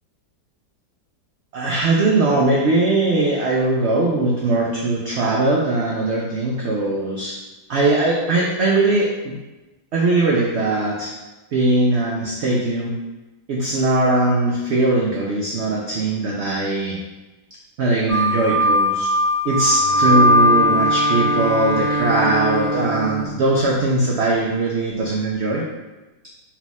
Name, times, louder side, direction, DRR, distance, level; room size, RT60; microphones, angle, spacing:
voice 1, 1.5-7.3 7.7-9.4 9.9-11.1 11.5-12.9 13.5-17.0 17.8-19.1 19.4-25.7, right 2 dB, 85° right, -3 dB, 0.6 m, -20 dB
sound 1, 18.1-22.9, left 1 dB, 30° right, 0.7 m, -19 dB
Bowed string instrument, 19.8-24.4, right 2 dB, 80° left, 1.4 m, -27 dB
4.3 x 2.3 x 4.0 m, 1.1 s
omnidirectional pair, 1.8 m